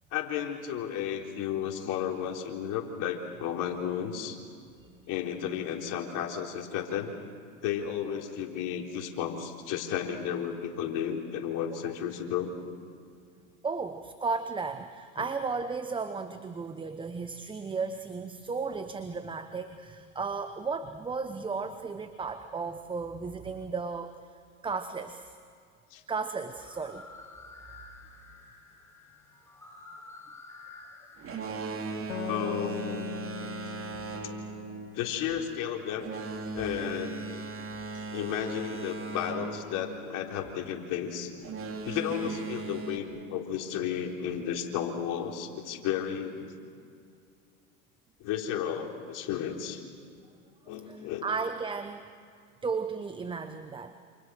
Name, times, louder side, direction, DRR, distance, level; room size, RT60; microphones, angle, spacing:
voice 1, 0.1-4.4 5.1-7.1 7.6-12.5 25.9-26.0 31.9-32.0 32.3-33.1 34.9-36.0 36.5-37.2 38.1-41.3 41.8-46.5 48.2-49.8 50.7-51.2, left 9 dB, 45° left, 1 dB, 4.0 m, -33 dB
voice 2, 13.6-24.2 24.6-25.4 26.1-27.1 42.1-42.4 50.8-52.0 52.6-54.0, right 4 dB, 10° right, 9 dB, 1.0 m, -34 dB
sound 1, 26.5-32.3, left 3 dB, 5° left, 7.6 m, -51 dB
Boat Water vehicle, 31.2-40.6 41.4-43.0, right 4 dB, 30° right, 3.2 m, -38 dB
sound 2, 32.1-35.6, left 13 dB, 60° left, 1.2 m, -41 dB
28.5 x 28.0 x 6.4 m, 2.3 s
hypercardioid pair, 110°, 43 cm